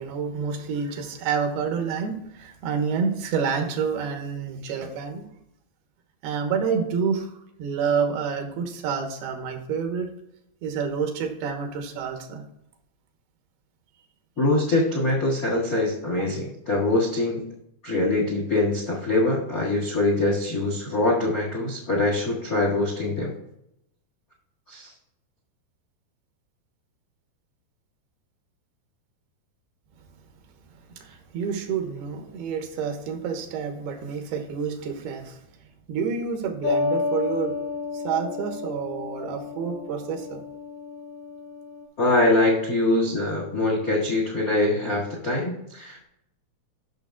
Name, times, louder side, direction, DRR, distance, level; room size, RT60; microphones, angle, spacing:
voice 1, 0.0-5.3 6.2-7.3 7.6-10.1 10.6-12.4 31.0-35.4 35.9-37.6 37.9-40.4, right 6 dB, 85° right, 4 dB, 3.1 m, -28 dB
voice 2, 14.4-17.4 17.8-23.3 24.7-24.9 42.0-46.1, left 2 dB, 75° left, -2 dB, 0.8 m, -23 dB
sound 1, 36.6-41.8, left 4 dB, 55° left, 1.2 m, -31 dB
11.0 x 6.4 x 2.4 m, 0.79 s
omnidirectional pair, 4.4 m